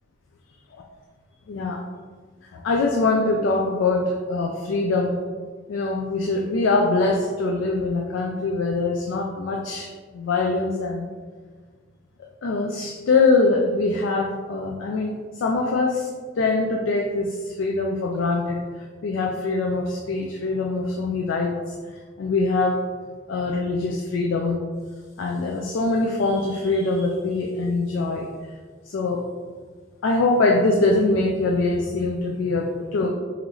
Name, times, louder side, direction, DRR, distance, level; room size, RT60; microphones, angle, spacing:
voice 1, 1.5-1.8 2.5-5.2 5.7-11.1 12.2-16.1 16.4-18.6 19.0-21.5 22.2-22.8 23.3-24.6 25.2-28.3 28.9-29.3 30.0-33.1, left 3 dB, 75° left, 1 dB, 0.4 m, -23 dB
3.8 x 3.0 x 3.0 m, 1.5 s
head